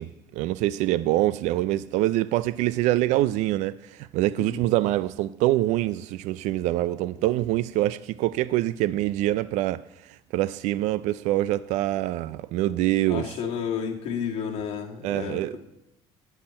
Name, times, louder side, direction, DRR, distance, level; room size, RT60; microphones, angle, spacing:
voice 1, 0.0-13.3 15.0-15.6, right 15 dB, 75° right, 0.4 m, -25 dB
voice 2, 13.1-15.6, left 7 dB, 55° left, 2.4 m, -31 dB
11.5 x 5.7 x 8.9 m
cardioid pair, 140°, 12 cm